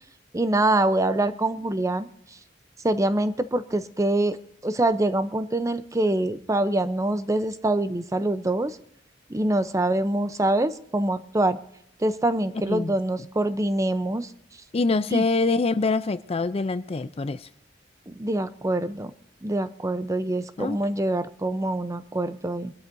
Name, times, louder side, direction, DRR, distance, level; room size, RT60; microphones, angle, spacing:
voice 1, 0.3-2.1 2.8-4.4 4.6-8.8 9.3-11.6 12.0-14.3 15.1-15.2 18.1-19.1 19.4-22.7, right 1 dB, 15° right, 12 dB, 0.6 m, -25 dB
voice 2, 12.7-13.0 14.7-17.5 20.6-20.8, left 3 dB, 30° left, 14 dB, 0.4 m, -25 dB
23.5 x 12.5 x 2.6 m, 0.74 s
head